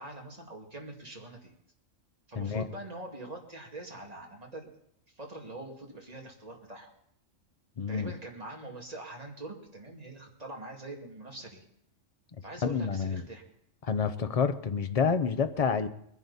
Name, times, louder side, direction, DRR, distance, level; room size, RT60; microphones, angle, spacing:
voice 1, 0.0-1.5 2.3-4.7 5.1-6.9 7.9-11.6 12.4-13.4, right 2 dB, 30° right, 2.4 m, -44 dB
voice 2, 7.8-8.1 12.6-13.2 13.8-15.9, left 6 dB, 35° left, 0.7 m, -28 dB
21.5 x 11.0 x 4.1 m
omnidirectional pair, 1.3 m